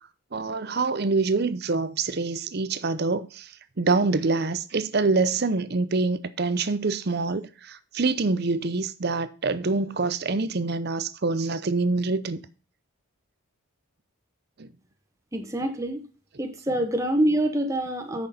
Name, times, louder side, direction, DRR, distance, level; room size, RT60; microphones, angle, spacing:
voice 1, 0.3-3.5 3.8-12.4 14.6-14.7, right 3 dB, 45° right, 0.6 m, -25 dB
voice 2, 15.3-16.0 16.4-18.3, right 1 dB, 15° right, 0.9 m, -25 dB
8.9 x 6.2 x 4.2 m
head